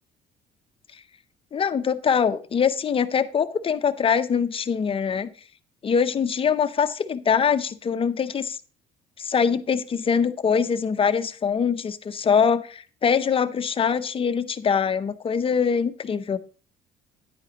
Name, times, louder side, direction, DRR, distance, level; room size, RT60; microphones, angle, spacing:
voice 1, 1.5-5.3 5.8-8.6 9.2-16.4, left 6 dB, 35° left, 12 dB, 0.6 m, -23 dB
10.0 x 8.9 x 2.9 m, 0.38 s
cardioid pair, 110°, 17 cm